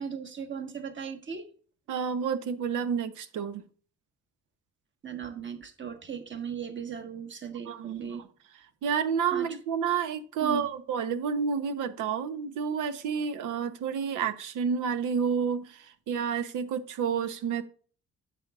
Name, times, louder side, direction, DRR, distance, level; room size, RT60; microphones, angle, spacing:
voice 1, 0.0-1.5 5.0-8.2 9.3-9.5 10.4-10.7, right 7 dB, 40° right, 1.4 m, -37 dB
voice 2, 1.9-3.6 7.7-8.3 8.8-17.6, right 6 dB, 85° right, 0.9 m, -30 dB
9.4 x 6.9 x 2.4 m
cardioid pair, 90°, 30 cm